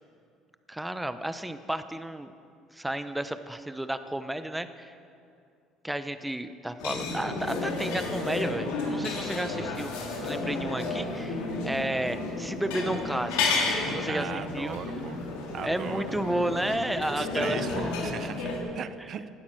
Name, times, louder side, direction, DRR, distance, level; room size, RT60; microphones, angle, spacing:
voice 1, 0.7-2.3 2.7-4.9 5.8-13.5 13.8-14.8 15.6-17.9, right 1 dB, 5° right, 10 dB, 0.9 m, -32 dB
sound 1, 6.8-18.6, left 3 dB, 90° left, 3.1 m, -32 dB
voice 2, 14.1-15.2 15.5-16.0 17.0-19.3, right 8 dB, 50° right, 13 dB, 0.8 m, -38 dB
18.5 x 12.5 x 6.2 m, 2.4 s
supercardioid pair, 95°, 0 cm